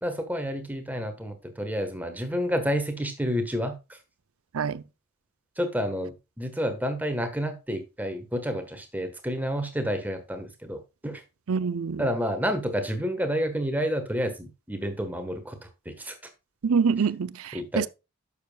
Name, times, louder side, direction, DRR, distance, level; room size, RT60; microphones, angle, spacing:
voice 1, 0.0-4.0 5.6-11.2 12.0-15.6 15.8-16.1 17.5-17.9, equal, 10° right, 1.4 m, -29 dB
voice 2, 11.5-12.1 16.6-17.9, right 5 dB, 75° right, 0.5 m, -26 dB
10.5 x 7.0 x 2.4 m
head